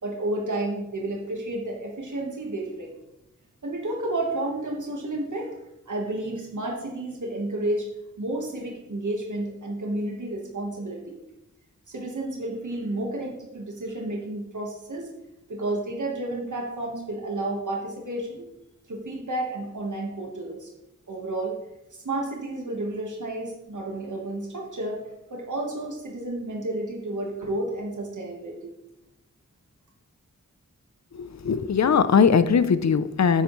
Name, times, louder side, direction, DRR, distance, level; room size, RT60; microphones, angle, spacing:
voice 1, 0.0-3.0 3.6-5.5 5.9-7.9 8.2-11.2 11.9-15.1 15.5-18.4 18.9-20.7 21.1-21.6 22.0-25.0 25.3-28.7, right 2 dB, 75° right, -1 dB, 1.5 m, -31 dB
voice 2, 31.1-33.4, left 6 dB, 60° left, 13 dB, 0.6 m, -20 dB
9.3 x 8.6 x 3.2 m, 0.90 s
wide cardioid pair, 60°, 30 cm